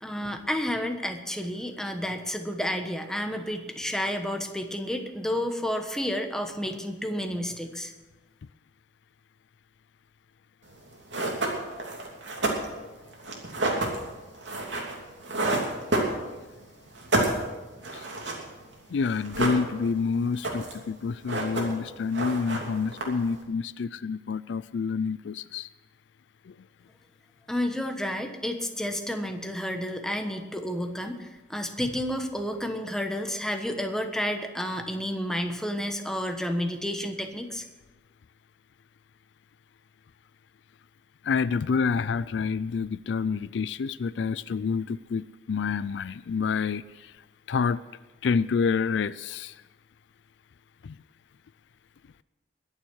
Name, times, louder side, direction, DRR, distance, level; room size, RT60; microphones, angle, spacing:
voice 1, 0.0-7.9 27.5-37.6, equal, 5° left, 5 dB, 1.2 m, -31 dB
sound 1, 10.7-10.8 11.1-16.6 16.9-18.5 18.7-18.8 19.0-20.0 20.3-20.9 21.1-21.9 22.1-23.4, right 2 dB, 80° right, 3.0 m, -29 dB
voice 2, 18.9-25.7 26.5-26.6 41.2-47.1 47.5-47.8 48.2-49.6 50.8-51.0, left 5 dB, 75° left, 17 dB, 0.4 m, -28 dB
21.5 x 7.4 x 6.3 m, 1.1 s
head